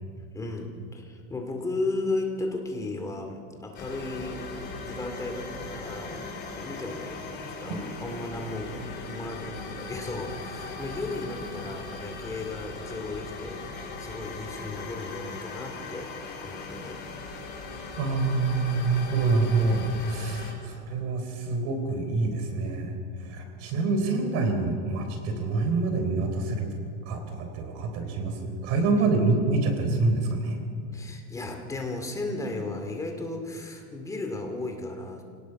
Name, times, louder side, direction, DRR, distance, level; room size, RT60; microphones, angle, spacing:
voice 1, 0.3-6.2 6.5-7.2 7.5-16.1 16.4-17.0 30.9-35.2, left 2 dB, 10° left, 3 dB, 2.4 m, -35 dB
sound 1, 3.7-20.5, left 3 dB, 30° left, 4.3 m, -39 dB
voice 2, 18.0-22.9 23.2-26.7 27.1-30.6, right 3 dB, 50° right, 5 dB, 3.9 m, -26 dB
26.5 x 18.5 x 6.0 m, 2.2 s
supercardioid pair, 160°, 34 cm